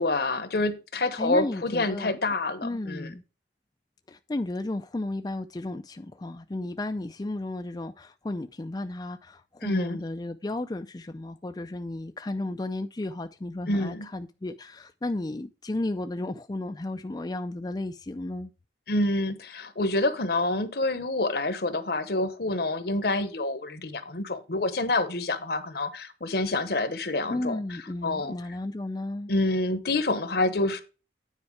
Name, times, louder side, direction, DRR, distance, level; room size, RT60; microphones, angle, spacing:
voice 1, 0.0-3.1 9.6-10.0 13.7-14.1 18.9-27.6 28.0-28.4 29.3-30.8, left 2 dB, 60° left, 1.0 m, -27 dB
voice 2, 1.2-2.2 2.6-3.2 4.1-18.5 27.3-29.3, left 2 dB, 20° left, 0.4 m, -33 dB
9.7 x 4.5 x 4.6 m
head